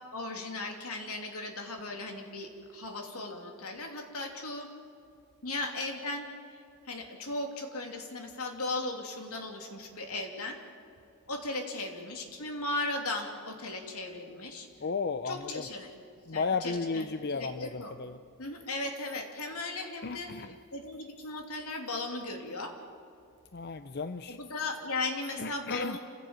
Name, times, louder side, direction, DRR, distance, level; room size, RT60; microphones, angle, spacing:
voice 1, 0.1-4.7 5.4-10.6 11.3-14.7 15.2-15.9 16.3-17.9 18.4-22.8 24.3-26.0, left 2 dB, 80° left, 3 dB, 3.1 m, -37 dB
voice 2, 14.8-15.7 16.3-18.2 20.0-20.5 23.5-24.4 25.4-26.0, left 4 dB, 45° left, 10 dB, 0.6 m, -34 dB
27.5 x 16.0 x 8.9 m, 2.5 s
head